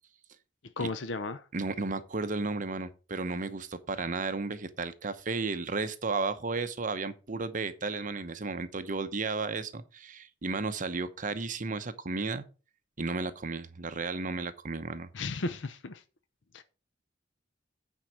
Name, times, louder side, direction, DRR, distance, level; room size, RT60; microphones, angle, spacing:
voice 1, 0.8-1.4 15.1-16.0 16.5-16.6, left 3 dB, 85° left, 0.7 m, -34 dB
voice 2, 1.5-12.4 13.0-15.1, right 3 dB, 45° right, 0.9 m, -33 dB
8.9 x 4.5 x 6.3 m
head